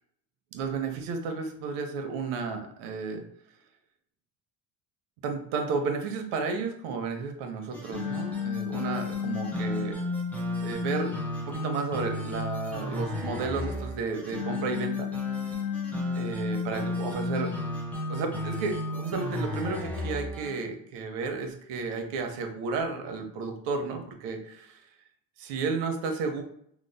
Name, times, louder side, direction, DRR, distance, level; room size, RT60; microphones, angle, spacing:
voice 1, 0.5-3.2 5.2-10.0 10.6-11.1 11.4-15.1 16.1-17.5 18.1-24.8 25.4-26.4, right 4 dB, 80° right, 5 dB, 0.8 m, -32 dB
sound 1, 7.7-20.6, left 3 dB, 5° left, 0.3 m, -32 dB
3.0 x 2.0 x 3.9 m, 0.68 s
cardioid pair, 150°, 40 cm